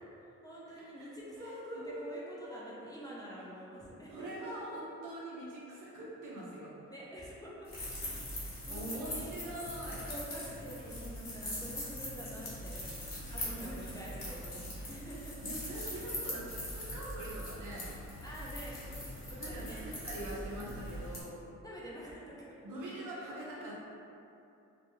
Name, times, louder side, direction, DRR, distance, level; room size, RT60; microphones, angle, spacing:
voice 1, 0.4-4.5 6.9-7.7 8.2-9.4 10.1-12.8 13.3-15.4 18.2-20.0 21.6-22.5 23.1-23.3, equal, 15° left, -7 dB, 0.5 m, -47 dB
voice 2, 1.0-2.0 2.4-2.6 4.1-6.7 8.7-10.1 13.3-13.8 15.4-17.9 19.4-21.4 22.6-23.7, right 1 dB, 80° right, -6 dB, 0.7 m, -43 dB
sound 1, 7.6-21.2, left 1 dB, 45° left, 1.1 m, -42 dB
2.5 x 2.2 x 3.0 m, 2.7 s
cardioid pair, 70°, 30 cm